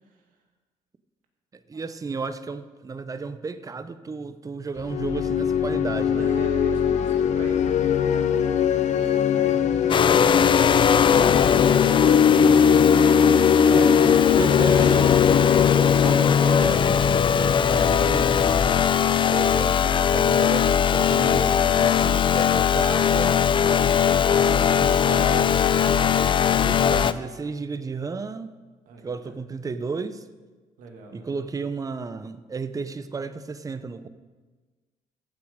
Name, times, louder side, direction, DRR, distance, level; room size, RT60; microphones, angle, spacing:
voice 1, 1.7-6.4 13.7-15.4 16.0-18.6 19.3-23.4 24.5-25.7 26.6-28.5 29.0-30.2 31.1-34.1, right 4 dB, 25° right, 12 dB, 0.7 m, -33 dB
sound 1, 4.8-17.4, left 8 dB, 60° left, 0.8 m, -22 dB
voice 2, 6.2-8.6 8.8-12.6 23.5-25.0 28.9-29.2 30.8-31.4, right 2 dB, 80° right, 2 dB, 2.2 m, -41 dB
sound 2, 9.9-27.1, left 7 dB, 35° left, 0.5 m, -19 dB
14.5 x 8.4 x 5.1 m, 1.4 s
cardioid pair, 105°, 14 cm